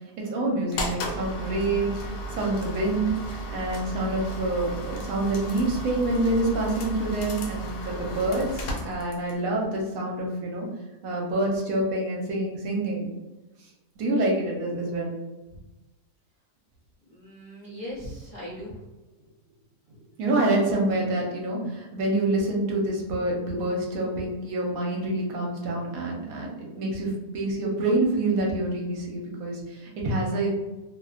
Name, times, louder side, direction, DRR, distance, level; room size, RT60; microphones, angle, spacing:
voice 1, 0.2-10.7 11.0-13.1 14.0-15.1 20.2-30.5, right 2 dB, 70° right, -2 dB, 0.9 m, -27 dB
sound 1, 0.7-9.4, right 1 dB, 80° left, 1.1 m, -34 dB
voice 2, 4.0-4.4 17.1-18.7, equal, 60° left, -9 dB, 0.5 m, -39 dB
2.6 x 2.1 x 2.3 m, 1.1 s
omnidirectional pair, 1.7 m